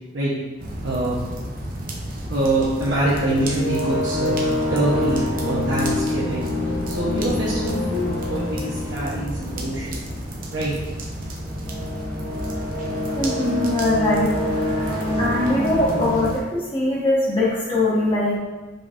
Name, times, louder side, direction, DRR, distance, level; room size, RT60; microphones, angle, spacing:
sound 1, 0.6-16.4, right 1 dB, 45° right, 0.7 m, -33 dB
voice 1, 0.8-1.1 2.3-4.4 4.7-6.5 6.9-10.0 10.5-10.7, right 1 dB, 75° right, -8 dB, 0.9 m, -24 dB
sound 2, 3.0-16.3, left 1 dB, 85° left, 1.2 m, -27 dB
voice 2, 13.2-14.3 14.7-14.8 15.2-18.4, left 1 dB, 25° left, -6 dB, 1.2 m, -21 dB
5.2 x 3.9 x 2.5 m, 1.2 s
head